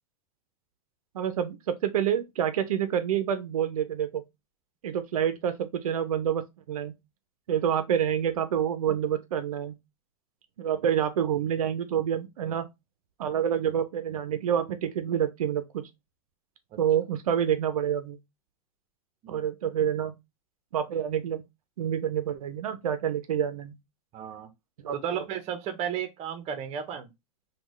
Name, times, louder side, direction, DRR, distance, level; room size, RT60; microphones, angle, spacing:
voice 1, 1.1-4.2 4.8-6.9 7.5-9.7 10.6-12.7 13.2-15.8 16.8-18.2 19.3-20.1 20.7-21.4 21.8-23.7 24.8-24.9, right 9 dB, 90° right, 0.6 m, -27 dB
voice 2, 24.1-24.5 24.9-27.1, right 8 dB, 35° right, 0.9 m, -34 dB
3.7 x 2.3 x 3.1 m
hypercardioid pair, 125°, 18 cm